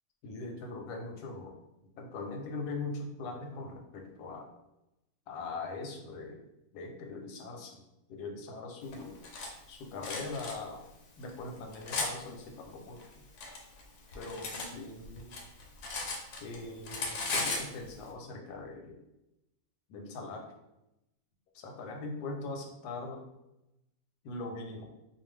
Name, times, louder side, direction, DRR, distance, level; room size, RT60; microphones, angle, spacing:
voice 1, 0.2-1.5 2.0-4.5 5.3-6.4 6.7-7.8 8.1-9.2 9.7-10.8 11.2-13.0 14.1-15.4 16.4-19.0 19.9-20.4 21.5-23.2 24.2-24.9, left 3 dB, 85° left, 2 dB, 1.1 m, -41 dB
Cutlery silverware, 8.9-9.5 10.0-10.5 11.2-12.1 13.0-14.7 15.0-16.6 16.8-17.7, left 3 dB, 65° left, 0.7 m, -36 dB
2.5 x 2.2 x 3.2 m, 0.90 s
omnidirectional pair, 1.6 m